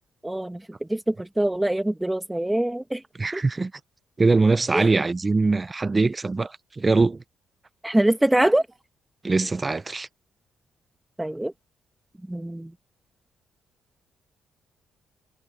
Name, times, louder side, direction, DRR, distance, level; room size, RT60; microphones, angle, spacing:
voice 1, 0.2-0.6 0.9-3.0 3.3-3.4 4.7-4.9 7.8-8.6 11.2-11.5 12.3-12.7, right 1 dB, 10° right, 1.7 m, -23 dB
voice 2, 3.2-3.7 4.2-7.2 9.2-10.1, right 3 dB, 25° right, 0.7 m, -22 dB
supercardioid pair, 70°, 0 cm